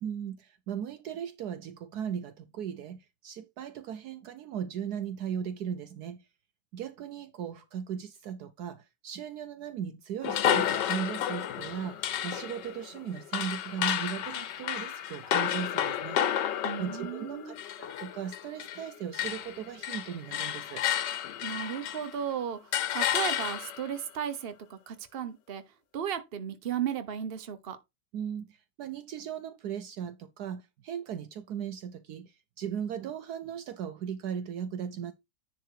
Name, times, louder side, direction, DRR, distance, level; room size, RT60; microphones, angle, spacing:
voice 1, 0.0-6.2 6.7-16.2 16.8-20.9 28.1-35.1, right 8 dB, 70° right, 1.1 m, -37 dB
sound 1, 10.2-18.9 19.1-22.2 22.7-23.9, left 10 dB, 85° left, 1.4 m, -31 dB
voice 2, 16.6-17.6 21.4-25.6 25.9-27.8, right 9 dB, 40° right, 1.1 m, -35 dB
10.0 x 3.7 x 4.6 m
omnidirectional pair, 1.9 m